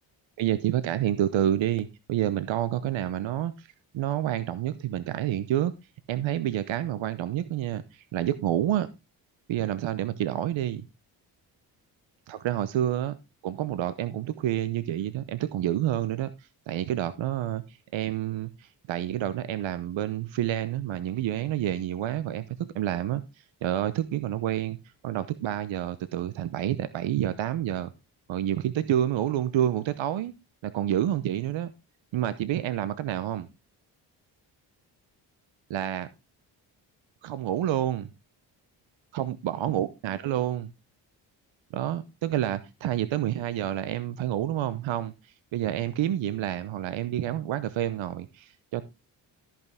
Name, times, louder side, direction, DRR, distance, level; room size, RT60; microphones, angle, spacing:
voice 1, 0.4-3.7 3.9-5.7 6.1-8.9 9.5-10.8 12.3-13.2 13.4-16.3 16.7-23.2 23.6-24.8 25.0-27.9 28.3-30.3 30.6-31.7 32.1-33.5 35.7-36.1 37.2-38.1 39.1-40.7 41.7-45.1 45.5-48.8, right 12 dB, 65° right, 14 dB, 0.9 m, -28 dB
13.0 x 5.8 x 3.5 m, 0.25 s
supercardioid pair, 50°, 50 cm